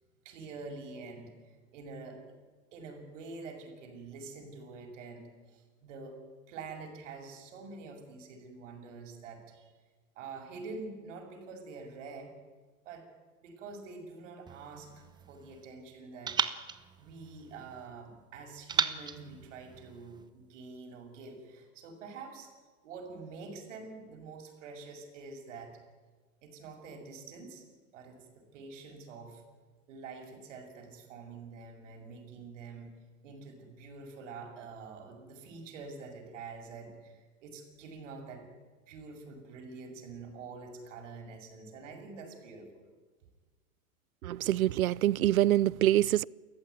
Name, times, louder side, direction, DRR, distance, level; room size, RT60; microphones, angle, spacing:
voice 1, 0.2-2.2 2.7-6.2 6.5-9.7 10.2-12.3 12.8-13.1 13.4-16.5 17.0-22.5 22.8-25.8 26.4-27.6 27.9-29.4 29.9-32.9 33.2-38.4 38.9-42.9, right 4 dB, 60° right, 6.6 m, -46 dB
sound 1, 14.5-15.7 16.3-17.9 18.7-20.3, right 6 dB, 10° right, 0.8 m, -36 dB
voice 2, 44.2-46.3, right 13 dB, 80° right, 0.7 m, -25 dB
29.0 x 15.0 x 9.5 m
hypercardioid pair, 130°, 42 cm